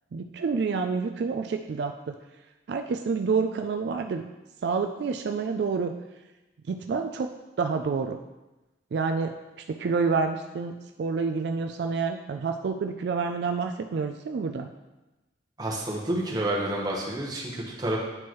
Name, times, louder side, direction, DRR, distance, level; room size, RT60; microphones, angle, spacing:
voice 1, 0.1-2.1 2.7-4.3 4.6-5.9 6.7-8.2 8.9-9.3 9.7-14.7, right 5 dB, 70° right, 5 dB, 0.3 m, -28 dB
voice 2, 15.6-18.0, right 1 dB, 20° right, -4 dB, 1.0 m, -29 dB
8.7 x 4.5 x 3.1 m, 1.1 s
head